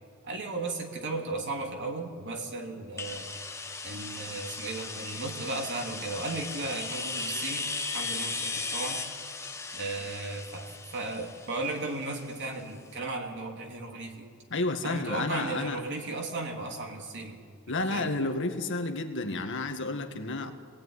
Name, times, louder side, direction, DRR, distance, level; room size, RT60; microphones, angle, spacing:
voice 1, 0.2-3.3 3.8-7.7 7.9-9.0 9.7-10.7 10.9-14.3 14.8-17.4 17.9-18.1, right 2 dB, 55° right, 2 dB, 3.0 m, -35 dB
sound 1, 3.0-12.6, left 4 dB, 15° left, 1.5 m, -37 dB
voice 2, 14.5-15.8 17.7-20.5, left 2 dB, 60° left, 6 dB, 1.8 m, -31 dB
25.5 x 18.0 x 9.7 m, 2.2 s
head